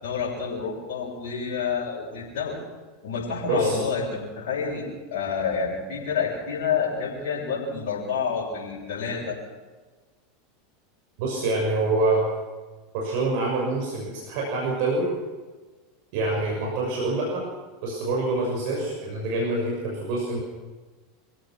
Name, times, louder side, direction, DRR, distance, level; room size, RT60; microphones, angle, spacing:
voice 1, 0.0-2.6 3.0-9.4, left 6 dB, 65° left, -6 dB, 7.2 m, -28 dB
voice 2, 3.5-3.8 11.2-12.3 12.9-15.1 16.1-17.4 17.8-20.4, right 2 dB, 60° right, -2 dB, 6.4 m, -26 dB
26.0 x 16.5 x 6.2 m, 1.3 s
hypercardioid pair, 85°, 0 cm